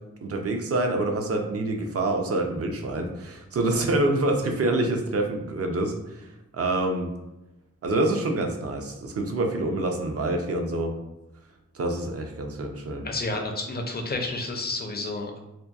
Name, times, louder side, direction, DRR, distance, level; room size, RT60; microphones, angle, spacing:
voice 1, 0.2-6.3 6.5-7.1 7.8-10.9 11.7-13.1, right 2 dB, 55° right, 3 dB, 0.4 m, -26 dB
voice 2, 13.0-15.4, left 2 dB, 35° left, 2 dB, 0.4 m, -30 dB
2.7 x 2.2 x 2.2 m, 0.94 s
wide cardioid pair, 80°, 29 cm